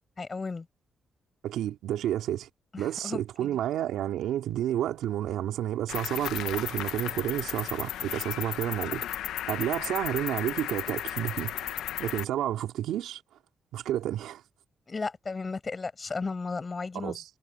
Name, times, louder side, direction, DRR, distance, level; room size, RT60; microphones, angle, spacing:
voice 1, 0.2-0.7 2.7-3.6 14.9-17.2, left 4 dB, 35° left, 7.8 m, -34 dB
voice 2, 1.4-2.5 2.8-9.0 9.5-13.2 13.7-14.4 16.9-17.2, right 12 dB, 85° right, 3.1 m, -30 dB
Cricket, 5.9-12.2, left 12 dB, 85° left, 1.0 m, -34 dB
cardioid pair, 70°, 0 cm